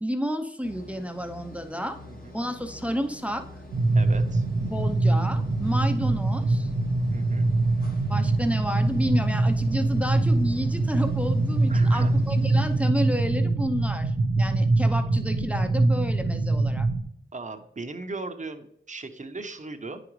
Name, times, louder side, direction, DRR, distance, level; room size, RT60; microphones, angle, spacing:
voice 1, 0.0-2.0 2.3-3.5 4.7-6.7 8.1-16.9, equal, 5° right, 7 dB, 0.6 m, -30 dB
sound 1, 0.6-12.9, left 1 dB, 45° left, 1.1 m, -45 dB
voice 2, 2.0-2.4 3.9-4.4 7.1-7.5 11.7-12.1 17.3-20.0, right 3 dB, 40° right, 7 dB, 0.8 m, -38 dB
sound 2, 3.7-17.0, right 2 dB, 80° right, 0.7 m, -23 dB
9.1 x 4.9 x 3.1 m, 0.73 s
cardioid pair, 50°, 20 cm